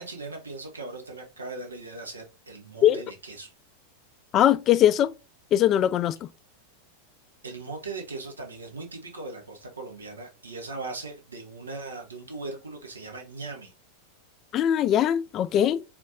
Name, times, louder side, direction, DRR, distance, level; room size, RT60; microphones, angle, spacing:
voice 1, 0.0-3.5 7.4-13.7, right 3 dB, 75° right, 1.3 m, -39 dB
voice 2, 4.3-5.1 5.5-6.3 14.5-15.8, left 11 dB, 30° left, 0.3 m, -21 dB
4.5 x 4.3 x 2.7 m
figure-of-eight pair, 90°, 0 cm